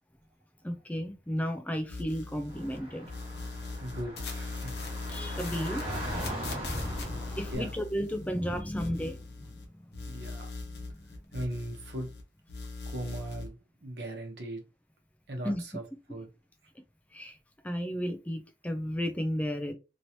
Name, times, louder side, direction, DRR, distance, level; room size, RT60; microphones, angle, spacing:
voice 1, 0.6-3.1 5.1-9.9 10.9-11.2 15.4-15.6 17.1-17.4 17.6-19.7, equal, 10° left, 0.4 m, -34 dB
sound 1, 1.9-2.8 3.0-9.7 9.9-12.2 12.5-13.5, left 3 dB, 65° left, 0.9 m, -40 dB
Car / Traffic noise roadway noise, 2.5-7.6, right 1 dB, 30° right, 1.3 m, -40 dB
voice 2, 3.8-4.7 7.5-7.7 10.1-10.5 11.3-12.1 12.9-13.5 13.8-14.6 15.3-15.8 16.1-16.3, right 1 dB, 75° right, 0.9 m, -38 dB
3.0 x 2.8 x 2.8 m
head